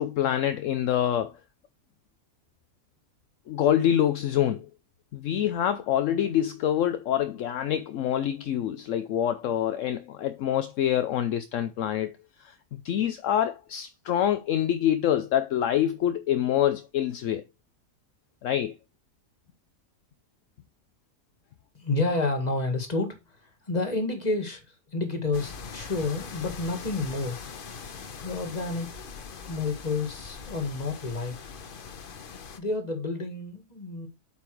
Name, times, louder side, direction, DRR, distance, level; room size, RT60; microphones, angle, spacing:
voice 1, 0.0-1.3 3.5-4.7 5.1-12.1 12.4-17.4 18.4-18.7, left 10 dB, 70° left, 0.9 m, -26 dB
voice 2, 21.7-27.4 28.2-29.0 29.5-31.3 32.6-34.1, left 3 dB, 30° left, 1.9 m, -30 dB
sound 1, 25.3-32.6, left 5 dB, 45° left, 0.9 m, -42 dB
8.2 x 5.6 x 3.1 m
omnidirectional pair, 1.4 m